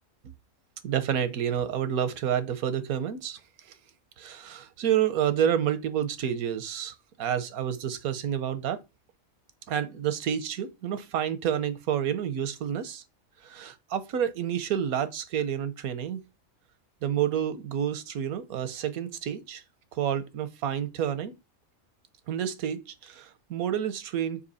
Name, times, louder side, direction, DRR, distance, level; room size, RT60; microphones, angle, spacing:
voice 1, 0.8-3.4 4.2-8.8 9.7-13.0 13.4-16.2 17.0-19.6 19.9-21.3 22.3-24.4, right 9 dB, 90° right, 1.3 m, -29 dB
5.8 x 4.7 x 4.1 m
omnidirectional pair, 1.5 m